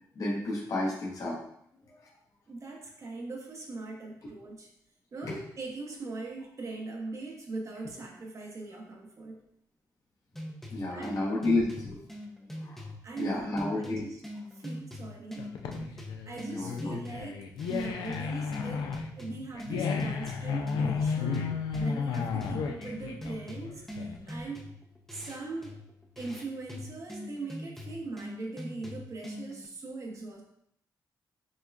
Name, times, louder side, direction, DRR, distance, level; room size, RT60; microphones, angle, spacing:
voice 1, 0.1-1.4 1.7-1.9 5.2-5.4 10.7-12.0 12.6-12.8 13.2-14.0 16.5-17.0, left 2 dB, 55° left, -4 dB, 1.0 m, -31 dB
voice 2, 2.5-4.7 5.1-9.4 10.9-11.2 13.0-14.2 14.5-15.4 16.3-21.5 21.8-24.6 25.1-25.8 26.2-30.4, right 3 dB, 45° right, 0 dB, 0.8 m, -40 dB
sound 1, 10.3-29.7, left 1 dB, 5° left, 0.6 m, -43 dB
sound 2, 15.4-24.4, left 5 dB, 85° left, 0.4 m, -33 dB
6.3 x 2.2 x 2.3 m, 0.72 s
cardioid pair, 90°, 7 cm